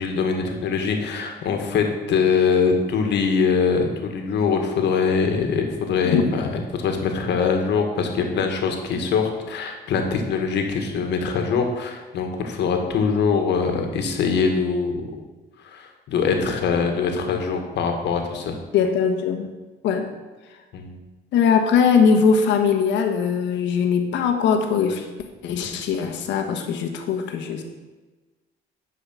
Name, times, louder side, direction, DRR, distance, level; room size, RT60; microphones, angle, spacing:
voice 1, 0.0-15.1 15.6-18.6 20.7-20.9, left 5 dB, 70° left, 4 dB, 1.7 m, -23 dB
voice 2, 18.7-19.5 19.8-20.1 21.3-25.1 25.4-27.6, left 6 dB, 85° left, 5 dB, 1.3 m, -20 dB
10.5 x 5.0 x 6.1 m, 1.2 s
cardioid pair, 95°, 18 cm